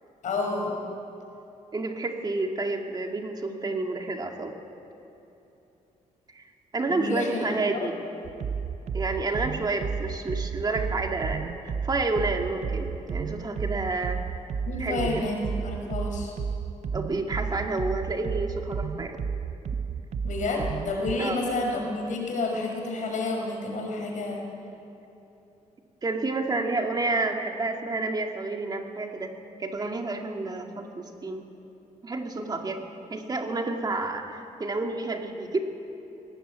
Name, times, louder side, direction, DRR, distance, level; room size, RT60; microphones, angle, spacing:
voice 1, 0.2-0.7 6.9-7.4 7.7-7.8 14.7-16.3 20.2-24.4, left 2 dB, 65° left, 1 dB, 5.7 m, -29 dB
voice 2, 1.7-4.5 6.3-6.4 6.7-8.0 8.9-14.2 14.8-15.1 16.9-19.2 21.2-21.4 26.0-29.3 29.6-31.4 32.0-32.8 33.1-35.6, right 3 dB, 30° right, 3 dB, 2.1 m, -29 dB
sound 1, 8.2-21.1, right 6 dB, 55° right, 0.8 m, -32 dB
20.0 x 18.0 x 9.4 m, 2.9 s
cardioid pair, 120°, 14 cm